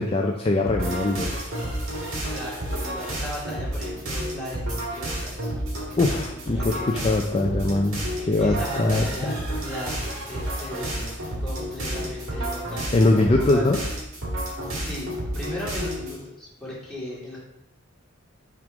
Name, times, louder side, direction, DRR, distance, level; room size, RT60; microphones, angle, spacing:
voice 1, 0.0-1.3 6.0-8.0 8.3-9.0 12.9-13.8, left 2 dB, 25° left, 2 dB, 0.3 m, -22 dB
sound 1, 0.7-16.2, right 1 dB, 65° right, 1.8 m, -30 dB
voice 2, 2.3-7.3 8.0-11.1 11.4-12.9 13.5-13.9 14.8-15.1 15.3-17.4, equal, ahead, -8 dB, 2.1 m, -37 dB
6.1 x 3.4 x 5.0 m, 0.86 s
head